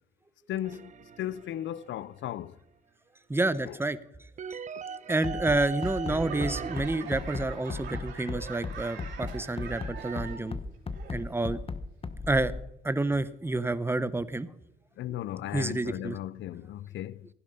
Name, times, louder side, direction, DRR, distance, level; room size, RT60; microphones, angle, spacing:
voice 1, 0.5-2.6 3.6-3.8 15.0-17.3, left 12 dB, 70° left, 0.6 m, -36 dB
sound 1, 0.6-2.3 4.4-6.8, right 6 dB, 40° right, 0.5 m, -40 dB
voice 2, 3.3-4.0 5.1-10.6 11.1-11.6 12.3-12.5 12.8-14.5 15.5-16.2, right 2 dB, 10° right, 0.8 m, -29 dB
Bass drum, 5.2-12.6, left 4 dB, 30° left, 1.0 m, -35 dB
Laughter / Clapping / Crowd, 5.8-10.6 10.9-11.4 12.0-12.1, right 6 dB, 65° right, 3.8 m, -43 dB
15.5 x 11.0 x 5.4 m
cardioid pair, 90°, 20 cm